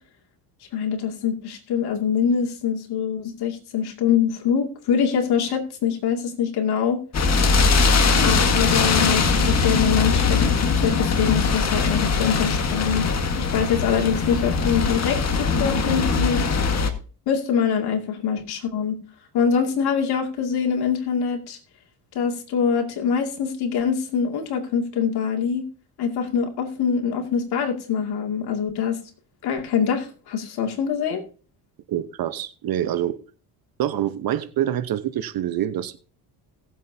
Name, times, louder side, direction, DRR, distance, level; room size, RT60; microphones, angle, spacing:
voice 1, 0.7-7.0 8.2-16.4 17.3-19.0 19.3-21.6 22.1-25.6 26.0-29.0 29.4-31.2, left 7 dB, 65° left, 2.5 m, -24 dB
sound 1, 7.1-16.9, left 4 dB, 40° left, 1.7 m, -21 dB
voice 2, 31.9-33.2 33.8-36.0, right 11 dB, 60° right, 1.1 m, -26 dB
18.5 x 7.5 x 2.8 m
supercardioid pair, 85°, 41 cm